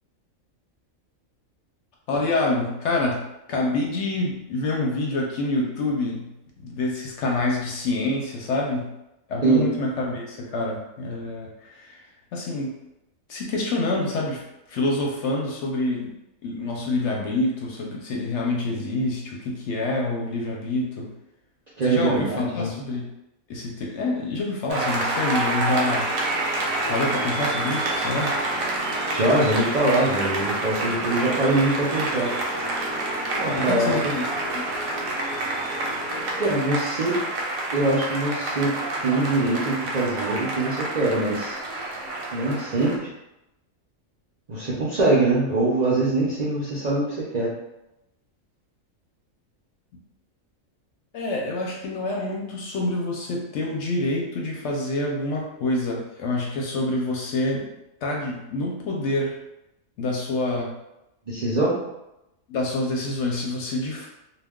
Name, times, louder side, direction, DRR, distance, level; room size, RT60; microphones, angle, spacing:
voice 1, 2.1-3.2 3.5-6.3 6.6-8.9 9.3-12.0 12.3-12.7 13.3-14.4 14.7-16.1 16.4-21.1 21.8-23.1 23.5-26.1 26.9-28.3 33.5-34.2 34.5-34.8 51.1-57.7 58.0-59.3 60.0-60.7 62.5-64.1, left 2 dB, 65° left, -1 dB, 0.8 m, -27 dB
voice 2, 21.8-22.7 29.1-32.3 33.4-34.1 36.4-37.2 37.7-38.7 39.0-41.6 42.3-43.1 44.5-47.5 61.3-61.8, right 2 dB, 55° right, -8 dB, 0.4 m, -23 dB
sound 1, 24.7-36.6, right 1 dB, ahead, 0.8 m, -37 dB
Applause, 24.7-43.0, right 2 dB, 90° right, 1.1 m, -28 dB
2.3 x 2.2 x 3.5 m, 0.91 s
omnidirectional pair, 1.4 m